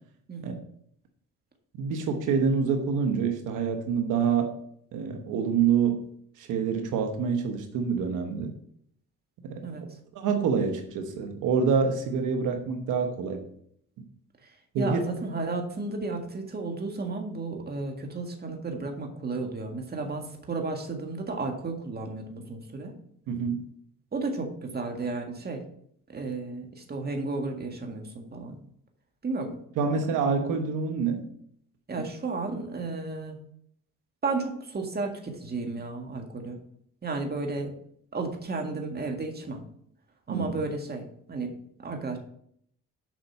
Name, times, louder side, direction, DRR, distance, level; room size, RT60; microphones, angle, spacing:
voice 1, 1.7-4.5 4.9-6.1 6.4-8.5 9.4-9.7 10.1-13.4 14.7-15.0 23.3-23.7 29.8-31.2 40.3-40.5, right 6 dB, 85° right, 5 dB, 1.2 m, -26 dB
voice 2, 14.8-22.9 24.1-25.6 26.1-28.6 29.2-29.6 31.9-33.4 34.2-36.6 37.0-37.7 38.1-39.6 40.3-41.5 41.8-42.2, right 3 dB, 30° right, 3 dB, 1.8 m, -33 dB
7.6 x 5.3 x 5.7 m, 0.67 s
cardioid pair, 90°, 30 cm